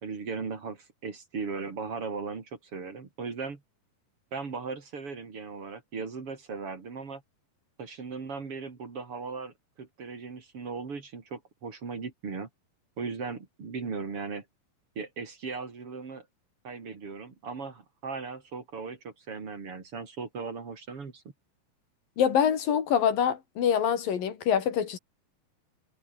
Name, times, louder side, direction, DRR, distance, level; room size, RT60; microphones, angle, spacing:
voice 1, 0.0-3.6 4.3-7.2 7.8-12.5 13.0-14.5 15.0-16.3 16.6-21.2, right 4 dB, 40° right, 3.8 m, -37 dB
voice 2, 22.2-25.0, left 8 dB, 85° left, 4.4 m, -25 dB
omnidirectional pair, 3.9 m